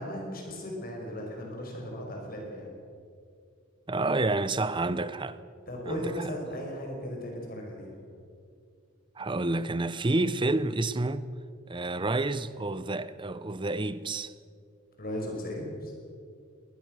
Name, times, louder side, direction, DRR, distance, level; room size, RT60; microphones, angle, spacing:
voice 1, 0.0-2.7 5.7-8.0 15.0-15.9, equal, 45° left, 5.7 m, -36 dB
voice 2, 3.9-5.4 5.9-6.1 9.2-11.3 11.7-14.3, right 2 dB, 25° right, 0.7 m, -29 dB
21.5 x 19.0 x 6.5 m
head